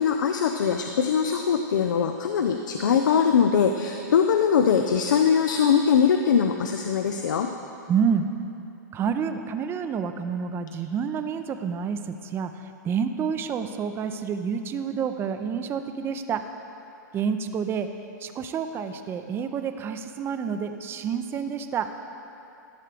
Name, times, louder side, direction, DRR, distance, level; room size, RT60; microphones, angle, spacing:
voice 1, 0.0-7.5, left 7 dB, 80° left, 5 dB, 0.4 m, -22 dB
voice 2, 7.9-8.3 8.9-12.5 12.8-16.4 17.1-17.9 18.2-21.9, right 7 dB, 25° right, 8 dB, 0.5 m, -28 dB
12.0 x 6.6 x 3.3 m, 2.7 s
hypercardioid pair, 120°, 10 cm